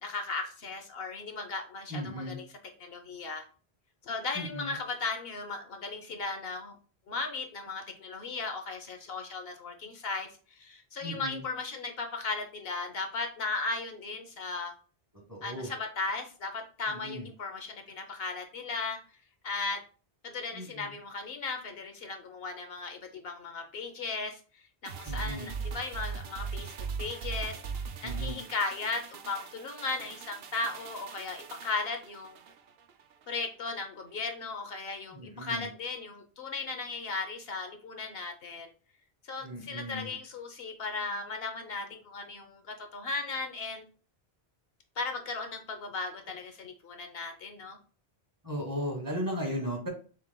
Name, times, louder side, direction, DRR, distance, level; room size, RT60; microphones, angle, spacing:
voice 1, 0.0-2.5 2.8-3.4 4.0-6.8 7.1-14.7 15.4-19.0 19.4-19.8 20.2-32.4 33.3-38.7 39.2-43.9 45.0-47.8, left 3 dB, 65° left, 5 dB, 1.0 m, -36 dB
voice 2, 1.9-2.4 4.3-4.7 11.0-11.4 15.3-15.7 16.9-17.3 20.5-20.9 25.0-25.5 28.0-28.4 35.1-35.7 39.4-40.1 48.4-49.9, equal, 20° right, 0 dB, 1.2 m, -36 dB
sound 1, 24.9-33.4 33.7-33.9, right 5 dB, 70° right, 0.8 m, -40 dB
7.0 x 3.3 x 2.2 m, 0.38 s
omnidirectional pair, 1.1 m